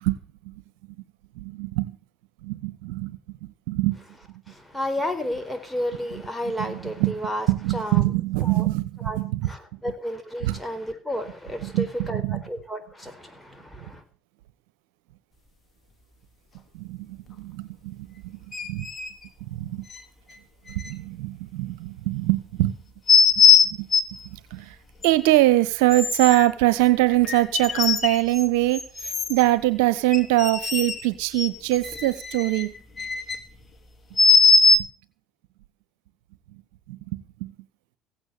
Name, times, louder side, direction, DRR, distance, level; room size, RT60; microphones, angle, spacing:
voice 1, 0.0-0.6 1.3-2.0 2.4-4.0 6.1-6.2 6.6-7.2 7.5-9.8 10.4-10.6 11.6-12.4 16.7-18.9 19.4-19.9 20.7-22.7 23.4-23.9 24.2-24.8 25.0-32.7 34.7-34.9 36.5-36.6 36.9-37.6, right 17 dB, 80° right, 1.0 m, -24 dB
voice 2, 4.5-8.0 8.4-8.7 9.0-9.2 9.5-14.0, equal, 5° left, 4.4 m, -32 dB
sound 1, 18.5-19.1 19.9-20.0 20.8-20.9 23.1-24.2 25.0-25.1 25.9-26.5 27.2-28.5 28.7-29.4 30.1-31.1 31.4-33.4 34.2-34.8, left 5 dB, 30° left, 3.3 m, -20 dB
16.0 x 9.0 x 6.7 m
hypercardioid pair, 70°, 0 cm